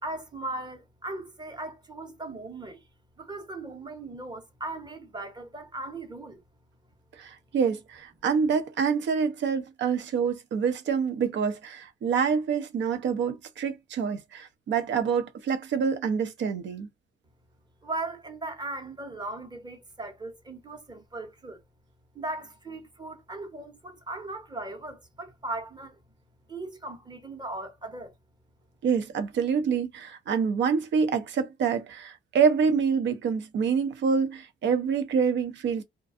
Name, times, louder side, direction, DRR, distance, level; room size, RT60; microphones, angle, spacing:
voice 1, 0.0-2.8 3.2-6.4 17.8-21.6 22.1-26.0 26.5-28.1, right 2 dB, 20° right, 0.9 m, -38 dB
voice 2, 7.2-16.9 28.8-35.8, right 6 dB, 65° right, 0.7 m, -26 dB
2.5 x 2.2 x 2.4 m
cardioid pair, 90°, 20 cm